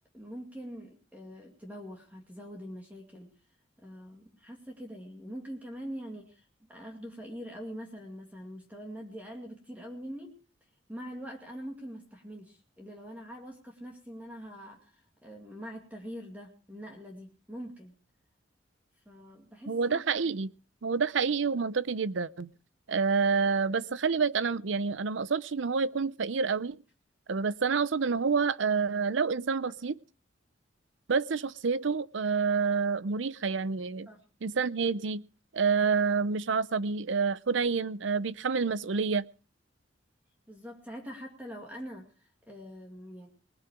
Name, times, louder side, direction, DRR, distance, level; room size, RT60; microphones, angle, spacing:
voice 1, 0.1-3.3 3.8-10.3 10.9-18.0 19.1-20.0 34.1-34.2 40.5-43.3, equal, 10° right, 1 dB, 2.3 m, -44 dB
voice 2, 19.7-20.5 20.8-22.5 22.9-26.8 27.3-30.0 31.1-34.1 34.4-35.2 35.5-39.2, right 5 dB, 80° right, 18 dB, 0.6 m, -28 dB
20.5 x 9.7 x 5.0 m, 0.37 s
head